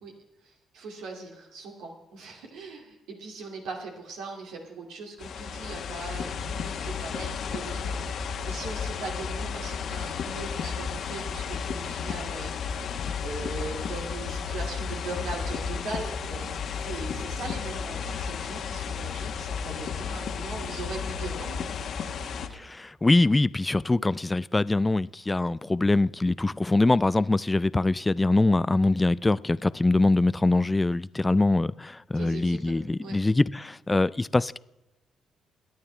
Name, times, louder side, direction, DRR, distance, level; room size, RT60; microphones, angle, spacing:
voice 1, 0.4-21.6 22.1-22.7 32.1-33.2, right 3 dB, 85° right, 2.4 m, -40 dB
sound 1, 5.2-22.5, left 6 dB, 65° left, 1.0 m, -33 dB
voice 2, 22.5-34.6, left 2 dB, 15° left, 0.3 m, -23 dB
22.5 x 9.0 x 3.4 m
cardioid pair, 90°, 0 cm